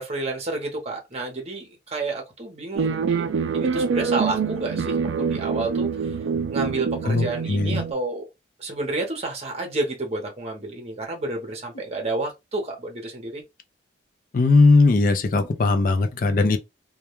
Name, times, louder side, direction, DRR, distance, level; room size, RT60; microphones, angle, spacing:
voice 1, 0.0-3.3 3.5-6.2 6.5-8.3 8.6-13.4, right 2 dB, 35° right, 0.8 m, -30 dB
sound 1, 2.8-7.9, right 5 dB, 80° right, 0.4 m, -25 dB
voice 2, 7.0-7.8 14.3-16.6, left 3 dB, 45° left, 0.4 m, -19 dB
2.3 x 2.2 x 2.9 m
head